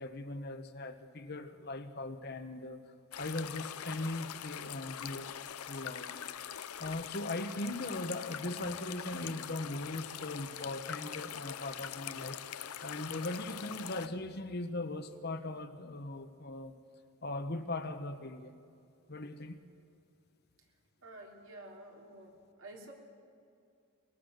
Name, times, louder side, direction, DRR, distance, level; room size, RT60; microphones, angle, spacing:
voice 1, 0.0-2.8 3.2-5.3 5.7-6.1 6.8-16.7 17.2-18.5 19.1-19.6, left 2 dB, 45° left, 8 dB, 1.1 m, -39 dB
sound 1, 3.1-14.1, left 9 dB, 85° left, 0.7 m, -43 dB
voice 2, 21.0-22.9, right 1 dB, 65° right, 0 dB, 3.6 m, -50 dB
23.0 x 22.0 x 6.6 m, 2.4 s
head